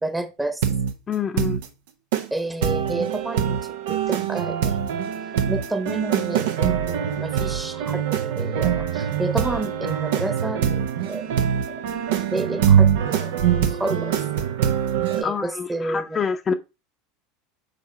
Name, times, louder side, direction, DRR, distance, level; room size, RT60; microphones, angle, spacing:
voice 1, 0.0-0.6 2.3-3.6 3.9-4.9 5.5-12.0 12.3-14.2 15.1-16.2, right 2 dB, 10° right, 1.2 m, -30 dB
sound 1, 0.6-0.9 1.4-1.7 2.1-2.3 2.6-15.2, right 9 dB, 65° right, 0.9 m, -23 dB
voice 2, 1.1-1.6 15.2-16.5, left 6 dB, 30° left, 0.8 m, -26 dB
6.6 x 4.7 x 4.5 m
figure-of-eight pair, 75°, 0 cm